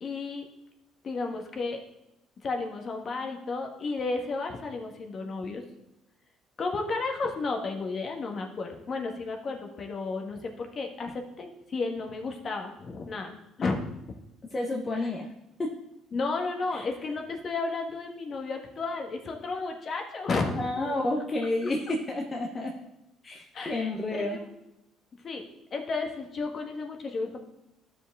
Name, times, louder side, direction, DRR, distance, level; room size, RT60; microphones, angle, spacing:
voice 1, 0.0-0.4 1.0-1.8 2.4-5.6 6.6-13.8 14.9-15.1 16.1-20.9 23.5-23.9 24.2-24.5 25.2-25.4 25.7-27.4, left 3 dB, 45° left, 3 dB, 1.5 m, -33 dB
voice 2, 14.5-15.3 15.6-15.7 16.7-16.8 20.6-22.7 23.2-24.4, left 2 dB, 30° left, 0 dB, 1.1 m, -30 dB
12.5 x 5.0 x 3.7 m, 0.89 s
supercardioid pair, 80°, 0 cm